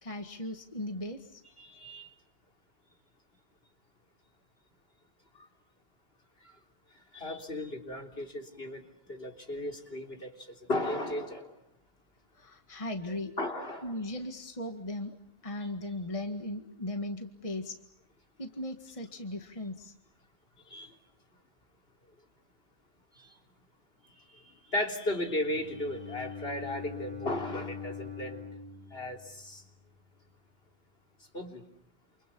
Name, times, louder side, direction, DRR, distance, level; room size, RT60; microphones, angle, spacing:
voice 1, 0.0-1.4 12.3-13.3 13.8-15.2 15.4-17.8 18.4-19.9, left 1 dB, 30° left, 2.0 m, -37 dB
voice 2, 1.6-2.1 5.4-5.5 7.1-11.5 13.4-13.9 20.7-20.9 23.2-23.3 24.3-24.4 24.7-28.4 28.9-29.6 31.3-31.6, left 1 dB, 60° left, 3.9 m, -35 dB
Bowed string instrument, 25.5-29.6, left 5 dB, 65° right, 3.2 m, -43 dB
29.0 x 28.5 x 7.1 m
omnidirectional pair, 1.1 m